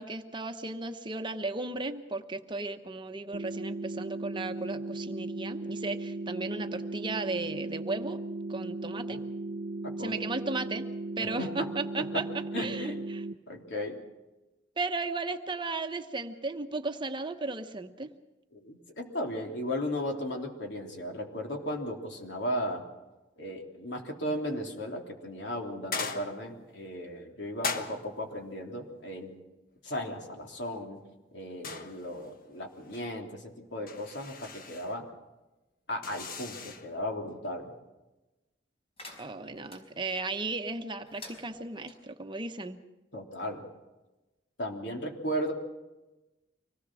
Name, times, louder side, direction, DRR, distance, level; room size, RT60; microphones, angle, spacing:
voice 1, 0.0-8.2 8.5-9.2 10.0-10.8 11.2-13.2 14.8-18.1 39.2-42.8, right 3 dB, 25° right, 6 dB, 1.0 m, -35 dB
sound 1, 3.3-13.3, right 2 dB, 55° right, 1.1 m, -37 dB
voice 2, 9.8-10.2 11.4-11.7 12.0-12.1 12.5-13.0 13.5-14.0 18.5-22.8 23.4-29.4 29.8-31.0 31.3-35.1 35.9-37.7 43.1-43.6 44.6-45.5, equal, 65° left, 2 dB, 3.5 m, -36 dB
sound 2, 25.9-26.7 27.6-28.4 31.6-32.4 32.7-33.1 33.9-35.0 36.0-36.9, left 4 dB, 50° left, 1.4 m, -38 dB
sound 3, 39.0-39.8 41.1-42.0, left 2 dB, 35° left, 5.0 m, -49 dB
25.0 x 19.0 x 6.2 m, 1.1 s
head